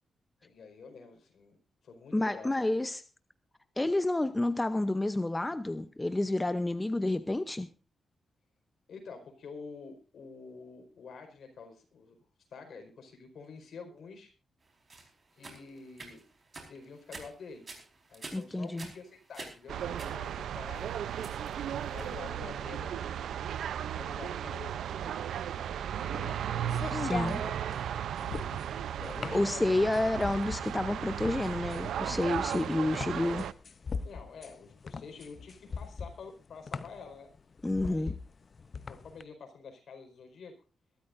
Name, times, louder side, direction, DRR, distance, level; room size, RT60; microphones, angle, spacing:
voice 1, 0.4-1.6 1.8-2.6 8.9-12.2 12.5-14.3 15.3-16.2 16.7-17.7 18.1-23.3 23.9-25.2 26.0-26.5 27.3-27.8 28.8-29.8 34.0-37.3 37.8-38.1 38.9-40.5, left 5 dB, 70° left, 4.8 m, -48 dB
voice 2, 2.1-3.0 3.8-7.7 18.3-18.9 26.9-27.4 29.3-33.5 37.6-38.1, left 2 dB, 15° left, 0.7 m, -30 dB
sound 1, 14.9-22.2, right 3 dB, 40° right, 4.5 m, -49 dB
sound 2, 19.7-33.5, right 9 dB, 85° right, 0.6 m, -35 dB
sound 3, 25.3-39.2, left 5 dB, 45° left, 0.7 m, -41 dB
22.5 x 13.0 x 2.6 m
cardioid pair, 95°, 0 cm